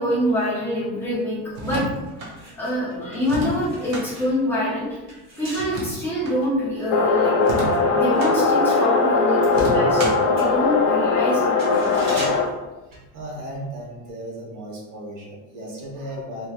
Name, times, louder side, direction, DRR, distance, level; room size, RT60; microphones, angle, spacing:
voice 1, 0.0-1.8 2.6-5.0 5.4-7.3 7.9-11.9, left 1 dB, 5° left, -8 dB, 0.5 m, -25 dB
sound 1, 1.5-2.3 3.2-4.1 5.5-6.4 7.4-8.4 9.5-10.3, right 1 dB, 45° right, 0.7 m, -30 dB
sound 2, 2.2-8.7 9.0-13.7 13.9-14.1, right 1 dB, 30° right, 1.2 m, -41 dB
sound 3, 6.9-12.5, left 3 dB, 80° left, 0.5 m, -19 dB
voice 2, 12.9-16.5, right 1 dB, 90° right, -2 dB, 1.2 m, -35 dB
3.0 x 2.9 x 2.3 m, 1.1 s
cardioid pair, 175°, 45 cm